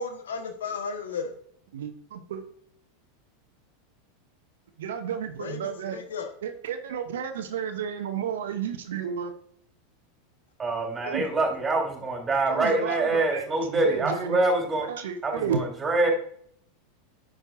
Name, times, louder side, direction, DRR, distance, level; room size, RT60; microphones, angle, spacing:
voice 1, 0.0-1.4 5.4-6.3, left 5 dB, 70° left, 6 dB, 1.1 m, -34 dB
voice 2, 1.7-2.5 4.8-6.0 6.4-9.3 11.0-11.2 12.5-14.5 14.8-15.7, right 7 dB, 70° right, 8 dB, 0.8 m, -32 dB
voice 3, 10.6-14.8 15.2-16.1, right 2 dB, 15° right, 1 dB, 3.2 m, -25 dB
9.9 x 6.3 x 2.6 m, 0.63 s
figure-of-eight pair, 85°, 0 cm